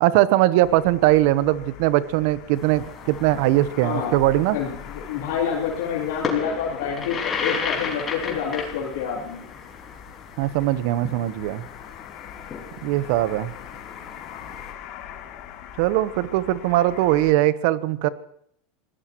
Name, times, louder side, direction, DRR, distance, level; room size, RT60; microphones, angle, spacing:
voice 1, 0.0-4.6 10.4-11.6 12.8-13.5 15.8-18.1, right 15 dB, 65° right, 15 dB, 0.9 m, -20 dB
sound 1, 0.6-17.3, left 9 dB, 60° left, 2.7 m, -43 dB
sound 2, 2.5-14.7, left 5 dB, 30° left, 4.9 m, -35 dB
voice 2, 3.7-4.1 4.4-9.4, left 7 dB, 75° left, -5 dB, 3.7 m, -28 dB
26.5 x 17.5 x 3.0 m, 0.68 s
hypercardioid pair, 105°, 0 cm